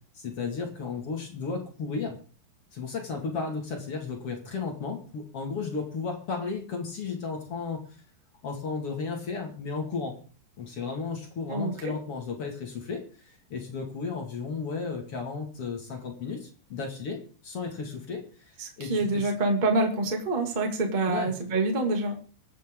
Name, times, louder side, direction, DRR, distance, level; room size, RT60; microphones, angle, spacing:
voice 1, 0.1-2.2 2.7-7.8 8.4-10.2 10.6-19.3 21.1-21.3, left 4 dB, 45° left, 1 dB, 2.1 m, -34 dB
voice 2, 11.5-11.9 18.6-22.1, right 2 dB, 45° right, 2 dB, 0.6 m, -26 dB
24.5 x 8.3 x 3.8 m, 0.38 s
omnidirectional pair, 5.8 m